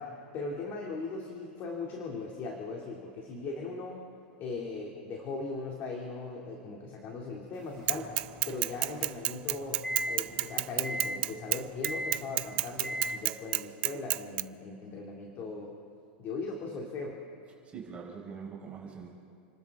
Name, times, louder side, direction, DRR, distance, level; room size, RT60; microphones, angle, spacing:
voice 1, 0.0-4.0 4.4-8.1 8.5-15.7 16.2-17.2, left 3 dB, 35° left, -1 dB, 2.5 m, -39 dB
sound 1, 7.8-13.2, equal, 5° left, 4.8 m, -39 dB
Bicycle / Mechanisms, 7.9-14.4, right 20 dB, 60° right, 0.5 m, -29 dB
voice 2, 17.6-19.1, right 6 dB, 20° right, -4 dB, 4.3 m, -43 dB
29.5 x 12.5 x 3.6 m, 2.7 s
supercardioid pair, 135°, 6 cm